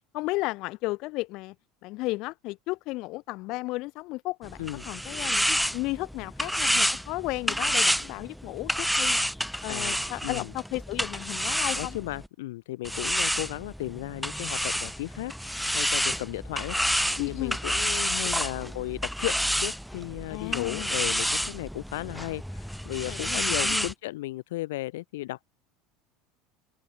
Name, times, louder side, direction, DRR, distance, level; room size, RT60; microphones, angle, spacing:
voice 1, 0.1-1.6 1.8-4.6 4.8-9.2 9.6-12.0 17.2-17.6 20.3-21.0 23.1-23.9, left 21 dB, 55° left, 3.6 m, -34 dB
sound 1, 4.4-12.3 12.8-23.9, equal, ahead, 0.6 m, -29 dB
voice 2, 11.7-16.8 17.2-25.5, left 18 dB, 85° left, 1.5 m, -35 dB
supercardioid pair, 130°, 0 cm